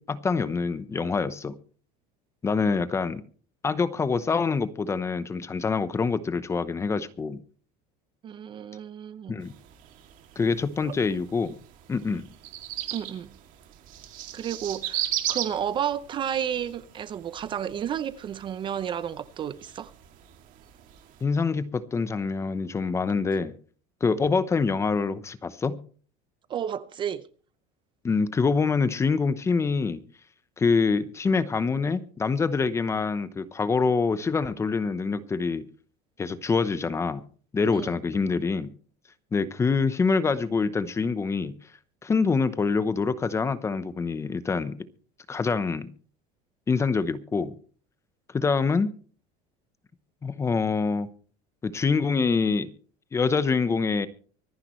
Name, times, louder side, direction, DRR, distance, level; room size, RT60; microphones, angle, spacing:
voice 1, 0.0-1.5 2.4-3.2 3.6-7.4 9.3-9.5 10.4-11.6 11.9-12.2 21.2-23.5 24.0-25.8 28.0-30.0 30.6-35.7 36.2-37.2 37.5-38.7 39.3-41.5 42.0-44.8 45.3-45.9 46.7-47.5 48.3-48.9 50.2-51.1 51.6-52.7 53.1-54.1, left 4 dB, 15° left, 0.8 m, -25 dB
voice 2, 8.2-9.3 10.8-11.0 12.9-13.3 14.3-19.9 26.5-27.3 37.7-37.9, right 9 dB, 25° right, 0.6 m, -32 dB
sound 1, 9.4-21.2, right 12 dB, 50° right, 2.4 m, -38 dB
24.5 x 10.5 x 3.1 m
cardioid pair, 160°, 18 cm